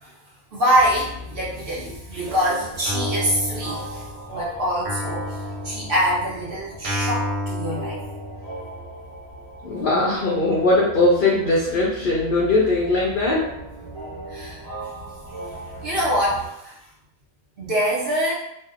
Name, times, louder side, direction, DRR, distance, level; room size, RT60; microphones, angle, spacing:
voice 1, 0.5-4.0 4.3-5.4 5.6-8.0 14.3-14.6 15.8-16.7 17.6-18.3, equal, 55° right, -6 dB, 0.6 m, -24 dB
sound 1, 0.7-16.5, right 1 dB, 25° right, 1.0 m, -38 dB
Guitar, 2.9-4.4 4.9-8.7, left 1 dB, 85° right, 1.1 m, -31 dB
voice 2, 9.6-13.5, left 2 dB, 75° left, -5 dB, 0.5 m, -20 dB
2.6 x 2.0 x 2.4 m, 0.80 s
omnidirectional pair, 1.4 m